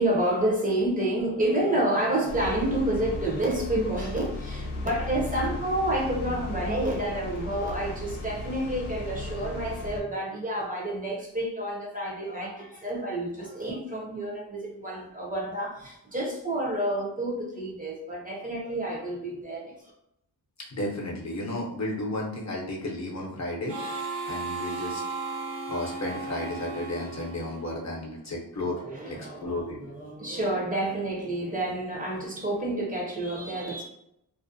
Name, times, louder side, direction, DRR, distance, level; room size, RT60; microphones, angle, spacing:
voice 1, 0.0-19.8 28.7-33.8, right 1 dB, 20° right, -2 dB, 0.6 m, -29 dB
sound 1, 2.3-10.0, left 2 dB, 85° left, 0.5 m, -36 dB
voice 2, 20.6-25.0 25.7-29.8, left 1 dB, 45° left, -2 dB, 0.7 m, -33 dB
Harmonica, 23.7-28.1, right 3 dB, 70° right, 0.7 m, -35 dB
2.4 x 2.1 x 2.6 m, 0.78 s
wide cardioid pair, 80°, 39 cm